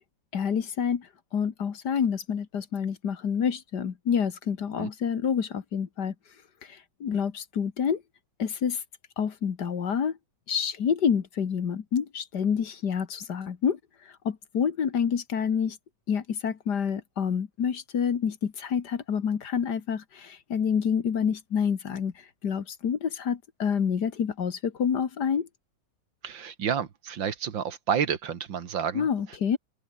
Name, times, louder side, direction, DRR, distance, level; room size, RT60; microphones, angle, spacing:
voice 1, 0.3-6.1 6.6-8.0 8.4-8.8 9.2-10.2 10.5-13.8 14.3-15.8 16.1-22.1 22.4-25.5 28.9-29.6, left 7 dB, 60° left, 2.1 m, -28 dB
voice 2, 26.2-29.1, right 8 dB, 85° right, 2.4 m, -30 dB
open air
omnidirectional pair, 2.0 m